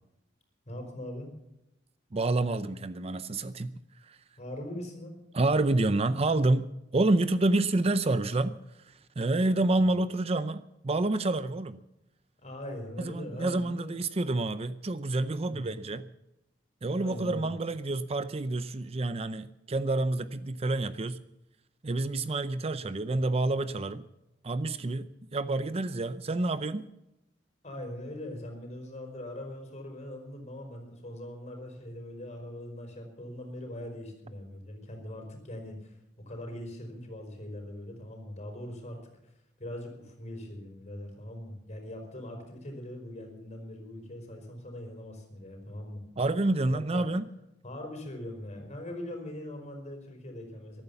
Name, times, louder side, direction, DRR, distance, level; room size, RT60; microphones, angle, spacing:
voice 1, 0.7-1.3 4.4-5.2 9.7-9.8 12.4-14.0 15.4-15.7 16.9-17.5 27.6-35.9 36.2-39.3 39.6-46.0 46.7-47.1 47.6-50.8, left 1 dB, 40° left, 4.9 m, -41 dB
voice 2, 2.1-3.7 4.0-4.2 5.3-8.6 8.9-11.8 13.0-16.0 16.8-21.2 21.8-24.0 24.4-26.8 46.2-47.3, right 2 dB, 35° right, 0.6 m, -28 dB
14.5 x 12.5 x 7.0 m
head